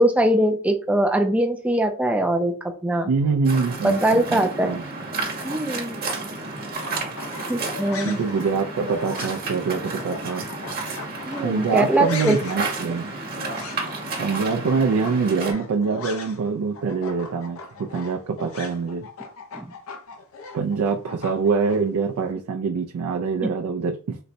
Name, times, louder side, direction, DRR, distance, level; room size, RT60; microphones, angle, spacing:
voice 1, 0.0-3.1 3.8-4.8 5.4-6.0 7.5-8.2 11.2-12.4 19.5-19.7, right 1 dB, 5° right, 0.4 m, -22 dB
voice 2, 3.1-4.8 8.0-10.5 11.4-13.1 14.2-19.1 20.5-24.2, right 5 dB, 80° right, 0.3 m, -24 dB
Waves surf, 3.5-15.5, right 3 dB, 45° right, 1.0 m, -32 dB
sound 1, 6.7-16.5 16.7-21.8, left 4 dB, 70° left, 0.6 m, -38 dB
4.0 x 2.1 x 2.6 m
head